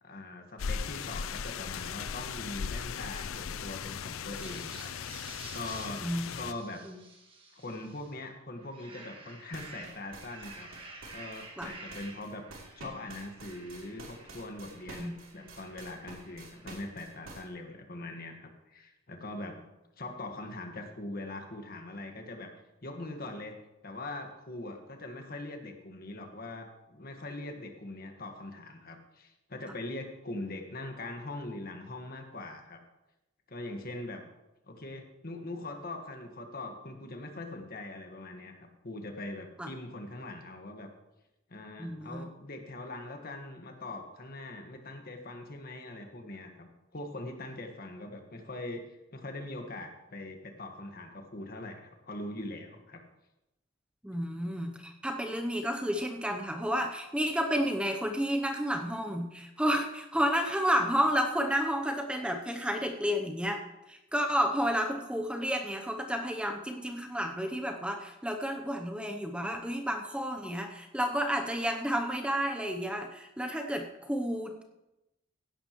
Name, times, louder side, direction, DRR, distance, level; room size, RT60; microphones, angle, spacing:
voice 1, 0.0-5.2 5.5-6.0 6.3-6.8 7.5-12.4 12.8-19.6 20.0-22.5 22.8-23.6 23.8-32.8 33.5-34.2 34.7-40.9 41.5-53.0, left 2 dB, 45° left, 4 dB, 1.5 m, -42 dB
sound 1, 0.6-6.5, left 6 dB, 90° left, 0.5 m, -38 dB
sound 2, 4.3-8.2 8.6-17.3, right 3 dB, 25° right, 1.7 m, -51 dB
sound 3, 9.5-17.4, right 2 dB, 85° right, 3.2 m, -48 dB
voice 2, 41.8-42.3 54.0-63.6 63.9-74.6, equal, 5° right, 3 dB, 0.7 m, -31 dB
16.0 x 11.0 x 3.1 m, 0.94 s
head